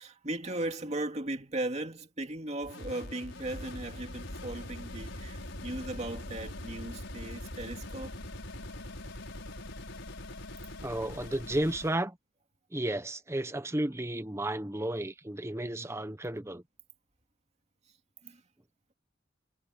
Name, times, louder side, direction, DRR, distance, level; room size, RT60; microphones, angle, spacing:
voice 1, 0.0-8.2 18.2-18.4, right 1 dB, 35° right, 2.4 m, -37 dB
sound 1, 2.6-12.0, left 1 dB, 70° left, 6.4 m, -42 dB
voice 2, 10.8-12.2 12.7-16.6, right 1 dB, 15° right, 1.0 m, -33 dB
head